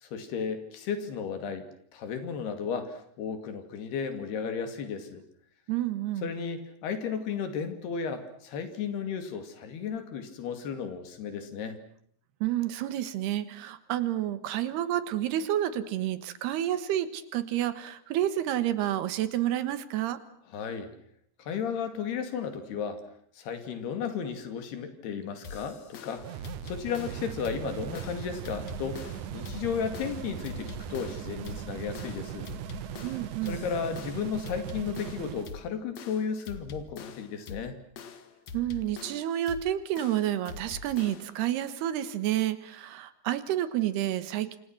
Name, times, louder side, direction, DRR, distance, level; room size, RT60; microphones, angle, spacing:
voice 1, 0.0-5.2 6.2-11.8 20.5-20.9 21.4-23.0 23.4-29.1 29.3-32.5 33.5-37.8, left 6 dB, 75° left, 8 dB, 4.5 m, -34 dB
voice 2, 5.7-6.3 12.4-20.2 33.0-33.7 38.5-44.6, right 12 dB, 85° right, 13 dB, 3.5 m, -29 dB
sound 1, 25.4-41.4, left 5 dB, 55° left, 2.3 m, -45 dB
sound 2, 26.2-35.5, right 11 dB, 65° right, 2.2 m, -39 dB
27.5 x 27.0 x 6.1 m, 0.63 s
omnidirectional pair, 4.6 m